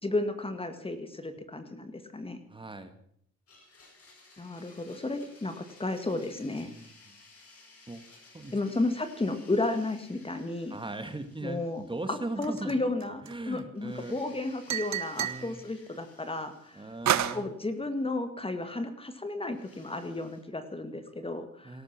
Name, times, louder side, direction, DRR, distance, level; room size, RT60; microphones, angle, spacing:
voice 1, 0.0-2.4 4.4-6.7 8.5-10.8 11.4-11.8 12.1-16.9 17.3-21.8, left 2 dB, 20° left, 8 dB, 1.9 m, -33 dB
voice 2, 2.5-2.9 6.7-7.1 7.9-8.0 8.3-8.7 10.7-12.8 13.2-14.2 15.2-15.6 16.7-17.5 21.6-21.8, right 2 dB, 15° right, 8 dB, 1.9 m, -39 dB
Domestic sounds home sounds, 3.5-12.6 12.9-13.0 13.8-17.7 19.5-20.4, left 3 dB, 50° left, 7.8 m, -57 dB
sound 1, 12.4-13.6 14.7-15.5 17.1-17.4, right 10 dB, 65° right, 1.2 m, -29 dB
17.5 x 13.5 x 6.0 m, 0.66 s
cardioid pair, 90°, 30 cm